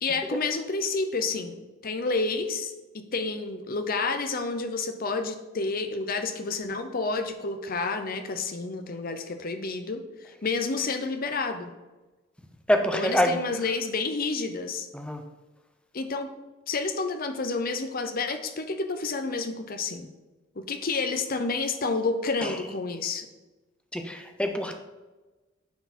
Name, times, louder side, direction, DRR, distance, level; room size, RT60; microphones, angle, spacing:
voice 1, 0.0-11.7 12.9-14.9 15.9-16.3 16.7-20.1 20.6-23.3, left 3 dB, 45° left, 7 dB, 0.8 m, -30 dB
voice 2, 12.7-13.4 14.9-15.2 22.4-22.5 23.9-24.8, equal, 5° left, 5 dB, 0.7 m, -26 dB
9.3 x 4.8 x 4.3 m, 1.2 s
head